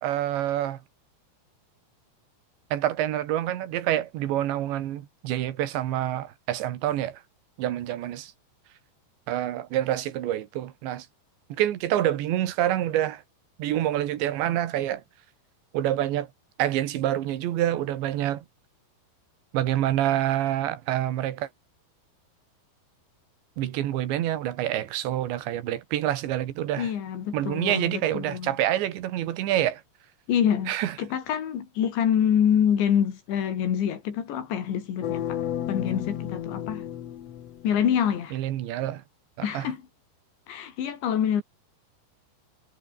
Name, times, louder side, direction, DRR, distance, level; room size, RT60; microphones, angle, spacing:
voice 1, 0.0-0.8 2.7-7.2 7.6-8.3 9.3-11.1 11.6-13.2 13.6-15.0 15.7-16.3 16.6-18.5 19.5-21.5 23.6-26.9 27.3-29.8 30.7-31.0 38.3-39.0 39.4-39.7, right 12 dB, 85° right, 4.0 m, -27 dB
voice 2, 26.8-28.6 30.3-30.7 31.0-35.4 35.7-36.9 37.6-38.4 39.4-39.8 40.5-41.4, left 9 dB, 85° left, 5.5 m, -26 dB
sound 1, 35.0-38.1, left 10 dB, 70° left, 1.6 m, -33 dB
omnidirectional pair, 5.0 m